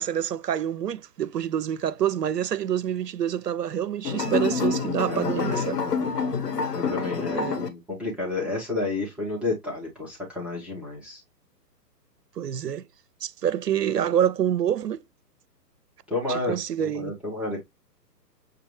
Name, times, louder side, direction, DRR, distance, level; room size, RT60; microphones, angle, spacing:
voice 1, 0.0-5.8 7.3-7.6 12.4-12.8 13.2-15.0 16.3-17.1, right 9 dB, 70° right, 0.7 m, -27 dB
sound 1, 4.0-7.7, left 5 dB, 70° left, 1.3 m, -27 dB
voice 2, 5.1-5.9 6.7-11.2 16.1-17.6, left 3 dB, 5° right, 0.7 m, -31 dB
6.6 x 2.3 x 3.0 m
figure-of-eight pair, 125°, 49 cm